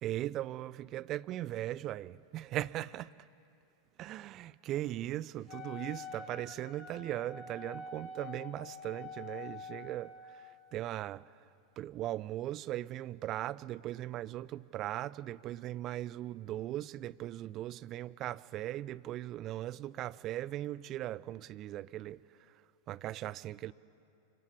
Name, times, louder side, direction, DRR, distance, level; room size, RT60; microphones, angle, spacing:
voice 1, 0.0-3.1 4.0-11.2 11.8-22.2 22.9-23.7, right 14 dB, 35° right, 0.6 m, -39 dB
Wind instrument woodwind instrument, 5.5-10.5, left 4 dB, 35° left, 1.9 m, -47 dB
25.5 x 24.0 x 8.7 m
figure-of-eight pair, 90°, 0 cm